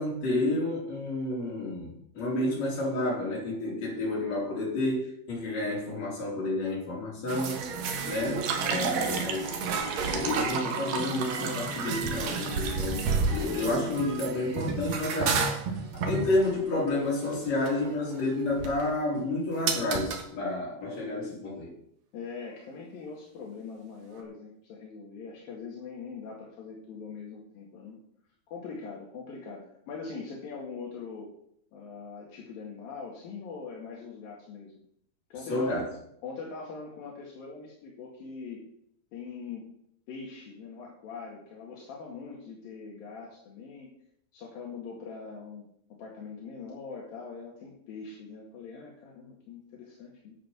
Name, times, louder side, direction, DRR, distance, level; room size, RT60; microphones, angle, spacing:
voice 1, 0.0-1.9 2.2-7.7 8.0-9.6 10.1-15.5 15.9-21.7 35.5-35.9, left 2 dB, 45° left, -4 dB, 5.3 m, -30 dB
sound 1, 7.3-18.9 19.7-20.2 24.2-24.3, right 4 dB, 55° right, 2.4 m, -32 dB
sound 2, 8.2-13.1, right 6 dB, 80° right, 3.3 m, -34 dB
voice 2, 8.8-9.2 22.1-28.0 28.5-31.3 31.7-34.8 35.3-35.8 36.2-38.6 39.1-39.7 40.1-43.9 44.3-45.6 46.0-50.4, left 5 dB, 75° left, -3 dB, 3.7 m, -42 dB
10.0 x 8.9 x 6.0 m, 0.70 s
omnidirectional pair, 4.2 m